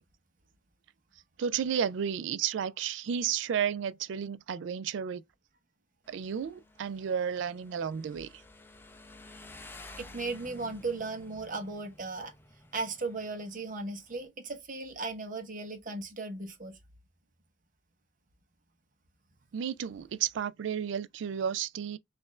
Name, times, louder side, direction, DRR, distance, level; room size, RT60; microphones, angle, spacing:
voice 1, 1.4-5.2 6.1-8.3 19.5-22.0, right 8 dB, 70° right, 0.3 m, -32 dB
Motorcycle, 6.0-14.3, left 2 dB, 10° left, 0.5 m, -52 dB
voice 2, 10.0-12.3 12.7-16.8, right 3 dB, 45° right, 0.9 m, -36 dB
4.1 x 2.5 x 3.1 m
head